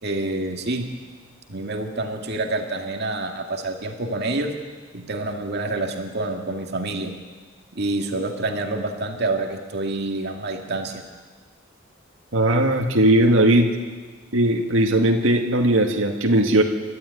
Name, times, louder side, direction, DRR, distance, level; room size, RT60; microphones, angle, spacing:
voice 1, 0.0-0.9 1.5-4.5 4.9-7.2 7.8-11.1, right 2 dB, 55° right, 3 dB, 2.2 m, -27 dB
voice 2, 12.3-13.7 14.3-16.6, right 1 dB, 75° right, 2 dB, 2.1 m, -18 dB
29.5 x 12.5 x 9.5 m, 1.4 s
head